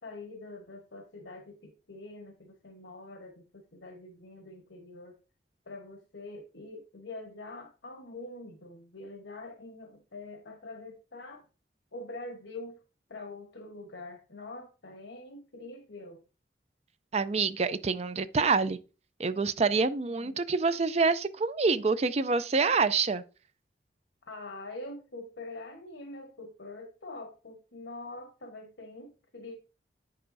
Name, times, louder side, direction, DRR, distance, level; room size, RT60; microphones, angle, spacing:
voice 1, 0.0-5.2 5.7-11.5 11.9-12.8 13.1-16.2 20.1-20.4 24.3-29.6, left 2 dB, 80° left, 1.2 m, -44 dB
voice 2, 17.1-18.8 19.2-23.2, right 4 dB, 35° right, 0.4 m, -26 dB
8.6 x 6.7 x 2.7 m
head